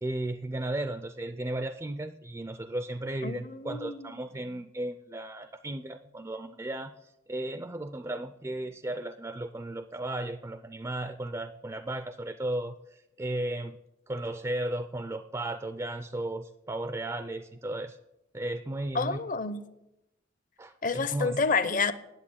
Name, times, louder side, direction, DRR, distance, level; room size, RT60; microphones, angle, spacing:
voice 1, 0.0-13.8 14.1-18.0 18.3-19.2 20.6-21.4, right 1 dB, 15° right, 0.4 m, -35 dB
voice 2, 3.2-4.1 18.9-19.7 20.8-21.9, left 4 dB, 45° left, 0.7 m, -29 dB
11.0 x 7.6 x 8.5 m
head